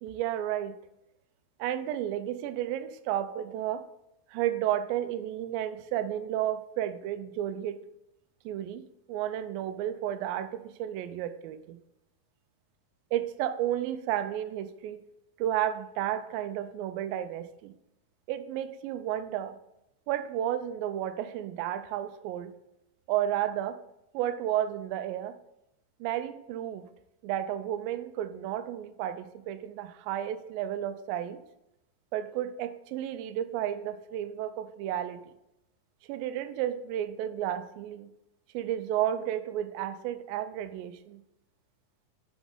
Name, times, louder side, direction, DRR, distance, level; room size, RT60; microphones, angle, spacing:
voice 1, 0.0-0.8 1.6-3.9 4.3-7.8 8.5-11.8 13.1-15.0 15.4-17.7 18.3-19.6 20.1-22.6 23.1-23.8 24.1-25.4 26.0-26.9 27.2-31.4 32.1-35.2 36.1-38.1 38.5-41.2, right 11 dB, 80° right, 10 dB, 2.2 m, -32 dB
6.1 x 6.0 x 5.3 m, 0.88 s
omnidirectional pair, 4.5 m